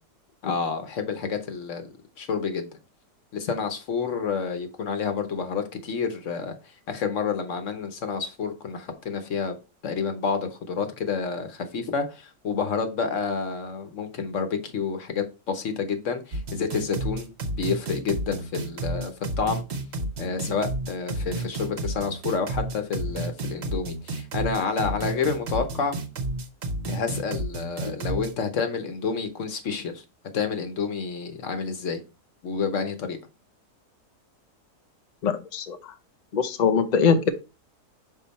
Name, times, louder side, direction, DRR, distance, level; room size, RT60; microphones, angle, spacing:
voice 1, 0.4-2.7 3.3-6.5 6.9-9.6 9.8-19.6 20.2-26.0 26.9-30.0 30.3-32.0 32.4-33.2, left 5 dB, 55° left, 1.1 m, -29 dB
sound 1, 16.3-28.3, right 2 dB, 50° right, 0.9 m, -31 dB
voice 2, 35.2-35.8 36.3-37.3, left 6 dB, 80° left, 0.3 m, -22 dB
5.7 x 4.4 x 4.1 m
omnidirectional pair, 1.7 m